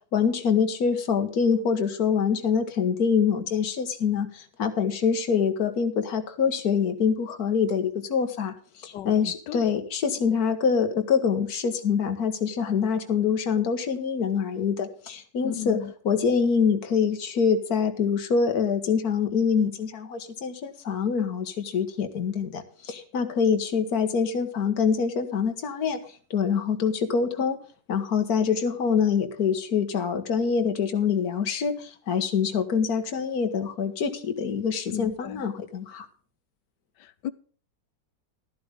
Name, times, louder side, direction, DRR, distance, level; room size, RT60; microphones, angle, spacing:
voice 1, 0.1-26.0 26.3-27.6 27.9-36.1, left 6 dB, 60° left, 1.9 m, -25 dB
voice 2, 8.9-9.7 15.4-15.9 34.9-35.4 37.0-37.3, left 11 dB, 90° left, 1.4 m, -35 dB
13.0 x 12.0 x 3.6 m
omnidirectional pair, 1.8 m